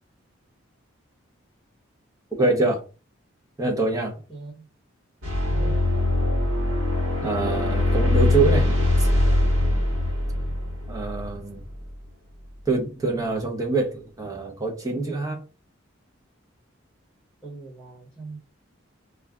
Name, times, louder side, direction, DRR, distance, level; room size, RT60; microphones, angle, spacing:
voice 1, 2.4-2.8 3.6-4.1 7.2-8.7 9.0-9.1 10.9-11.6 12.7-15.4, right 3 dB, 15° right, 0.6 m, -25 dB
voice 2, 4.3-4.7 5.4-5.8 10.3-10.5 17.4-18.4, right 3 dB, 5° left, 0.9 m, -40 dB
sound 1, 5.2-11.9, left 2 dB, 75° right, 1.2 m, -22 dB
2.3 x 2.2 x 3.4 m
head